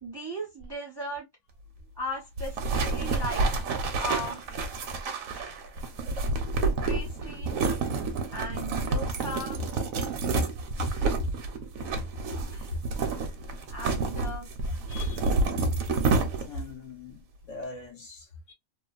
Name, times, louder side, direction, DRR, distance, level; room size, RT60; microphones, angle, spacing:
voice 1, 0.0-1.3 2.0-3.5 4.0-4.4 6.8-7.6 8.3-9.6 12.5-12.8 13.7-14.5, equal, 25° right, 0.7 m, -37 dB
sound 1, 2.4-16.7, right 3 dB, 75° right, 1.1 m, -29 dB
voice 2, 14.9-15.3 15.7-15.8 16.5-18.5, left 1 dB, 65° left, 1.4 m, -37 dB
3.0 x 2.1 x 2.3 m
omnidirectional pair, 1.4 m